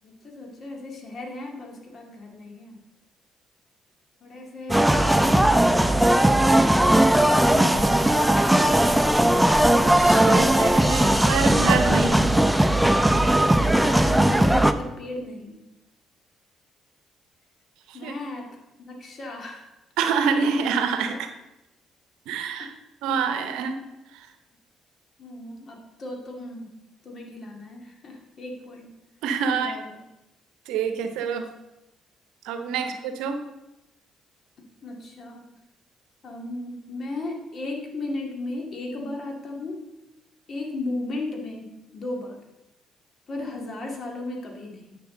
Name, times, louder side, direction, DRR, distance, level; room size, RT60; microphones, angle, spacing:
voice 1, 0.0-2.8 4.2-5.1 7.2-9.1 13.2-15.6 17.9-18.5 18.8-19.7 20.9-21.1 22.6-22.7 25.2-26.7 27.0-28.9 29.5-29.9 32.8-33.0 34.8-35.5 36.2-39.8 40.5-42.4 43.3-45.0, left 2 dB, 50° left, 1 dB, 2.0 m, -36 dB
sound 1, 4.7-14.7, right 1 dB, 5° right, 0.6 m, -18 dB
voice 2, 10.0-12.4 17.9-18.1 20.0-21.3 22.3-22.7 23.0-23.8 24.1-24.3 29.2-29.8 30.7-31.5 32.4-33.4, right 6 dB, 70° right, 8 dB, 0.8 m, -26 dB
10.0 x 6.0 x 3.8 m, 0.93 s
hypercardioid pair, 45°, 0 cm